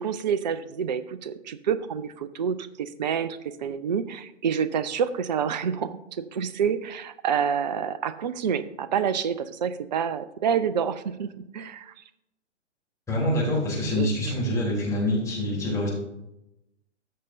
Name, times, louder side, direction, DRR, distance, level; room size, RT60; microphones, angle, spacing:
voice 1, 0.0-11.9 13.9-14.1, right 7 dB, 40° right, 14 dB, 0.4 m, -28 dB
voice 2, 13.1-15.9, left 1 dB, 10° left, -6 dB, 3.5 m, -25 dB
14.0 x 6.5 x 2.7 m, 0.87 s
figure-of-eight pair, 120°, 37 cm